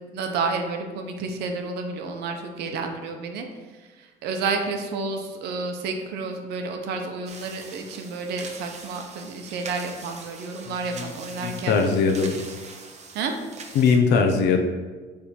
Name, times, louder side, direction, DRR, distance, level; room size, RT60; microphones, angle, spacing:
voice 1, 0.1-3.5 4.2-11.8 13.1-13.3, right 4 dB, 80° right, 4 dB, 0.9 m, -30 dB
sound 1, 7.3-14.0, right 4 dB, 40° right, 1.0 m, -42 dB
voice 2, 11.4-12.4 13.7-14.6, left 5 dB, 85° left, 4 dB, 0.9 m, -20 dB
8.6 x 3.5 x 4.4 m, 1.4 s
cardioid pair, 110°, 17 cm